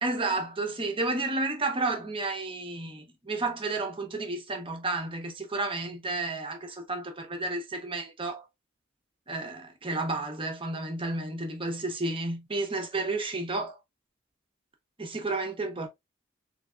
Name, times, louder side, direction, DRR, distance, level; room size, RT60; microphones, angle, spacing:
voice 1, 0.0-8.4 9.3-13.8 15.0-15.9, right 2 dB, 25° right, 0.9 m, -31 dB
3.4 x 3.3 x 2.4 m
head